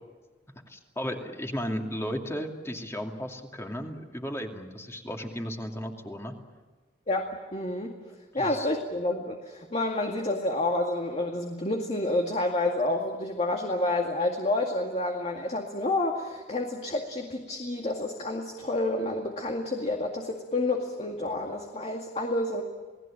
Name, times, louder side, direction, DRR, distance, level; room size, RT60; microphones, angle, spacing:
voice 1, 0.7-6.4 8.3-8.7, equal, 15° left, 2 dB, 2.5 m, -35 dB
voice 2, 7.1-7.9 8.3-22.6, left 2 dB, 35° left, 2 dB, 2.2 m, -29 dB
28.5 x 19.0 x 8.8 m, 1.3 s
head